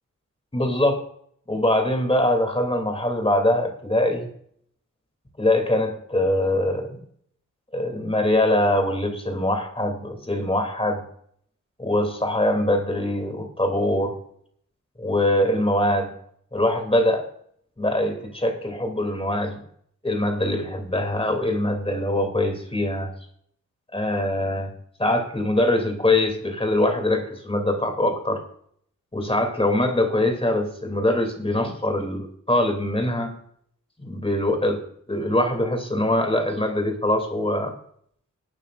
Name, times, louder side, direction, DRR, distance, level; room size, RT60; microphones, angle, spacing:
voice 1, 0.5-1.0 1.5-4.3 5.4-7.0 7.7-11.0 11.8-14.1 15.0-16.1 16.5-17.3 17.8-19.6 20.0-23.1 23.9-24.7 25.0-28.4 29.1-33.4 34.0-34.8 35.1-37.7, left 1 dB, 20° left, 5 dB, 2.8 m, -23 dB
19.5 x 9.2 x 2.5 m, 0.64 s
wide cardioid pair, 90°, 31 cm